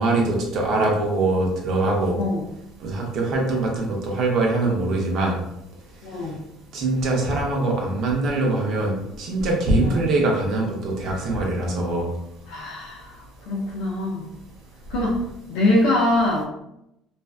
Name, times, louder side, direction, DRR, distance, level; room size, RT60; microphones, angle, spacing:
voice 1, 0.0-2.2 2.8-5.4 6.7-12.1, right 2 dB, 55° right, -1 dB, 0.7 m, -23 dB
voice 2, 6.0-6.4 9.8-10.1 12.5-14.3 14.9-15.2 15.5-16.4, left 1 dB, 80° left, -4 dB, 0.5 m, -23 dB
2.5 x 2.2 x 2.4 m, 0.84 s
cardioid pair, 120°, 0 cm